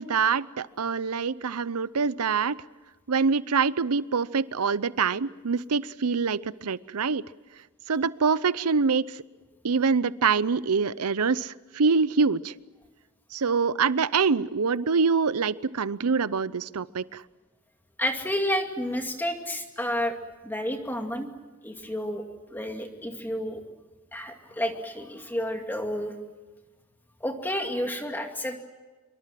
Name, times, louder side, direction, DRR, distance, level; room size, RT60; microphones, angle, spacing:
voice 1, 0.0-2.6 3.1-7.2 7.9-9.1 9.6-12.5 13.3-17.2, right 5 dB, 85° right, 18 dB, 0.7 m, -25 dB
voice 2, 18.0-20.2 20.4-21.3 21.6-23.6 24.1-26.1 27.2-28.6, equal, 10° left, 4 dB, 2.3 m, -30 dB
25.5 x 24.0 x 7.6 m, 1.3 s
head